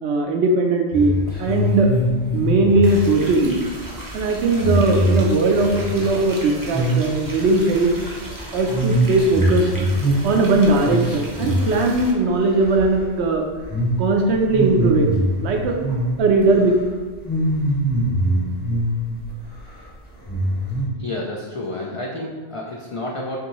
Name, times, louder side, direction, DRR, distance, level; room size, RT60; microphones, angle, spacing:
voice 1, 0.0-1.9 2.3-3.6 4.1-7.9 8.5-9.9 10.2-13.4 14.0-15.8 16.2-16.7, right 2 dB, 80° right, 2 dB, 0.9 m, -19 dB
sound 1, 0.9-6.4 6.6-7.1 7.4-12.3 12.6-13.1 13.6-14.0 14.4-16.4 16.7-16.9 17.2-19.3 19.6-19.7 20.2-20.9, right 1 dB, 10° left, 0.8 m, -22 dB
sound 2, 2.8-12.1, right 1 dB, 20° right, 0.6 m, -36 dB
voice 2, 20.9-23.4, left 1 dB, 50° left, -2 dB, 0.4 m, -30 dB
6.0 x 2.7 x 3.0 m, 1.4 s
omnidirectional pair, 1.1 m